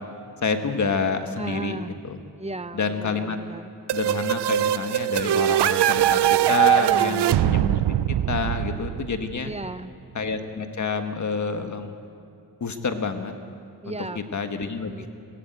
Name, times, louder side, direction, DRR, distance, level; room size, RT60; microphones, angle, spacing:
voice 1, 0.4-2.2 2.7-3.4 3.9-9.5 10.1-12.0 12.6-13.3 13.9-15.1, left 4 dB, 45° left, 7 dB, 1.5 m, -28 dB
voice 2, 1.4-1.9 2.4-3.7 6.8-7.2 9.4-9.9 11.0-11.1 13.8-14.2 14.8-15.1, right 2 dB, 15° right, 12 dB, 0.6 m, -35 dB
sound 1, 3.9-9.6, right 12 dB, 90° right, 0.6 m, -22 dB
20.0 x 16.0 x 9.1 m, 2.5 s
wide cardioid pair, 110°, 39 cm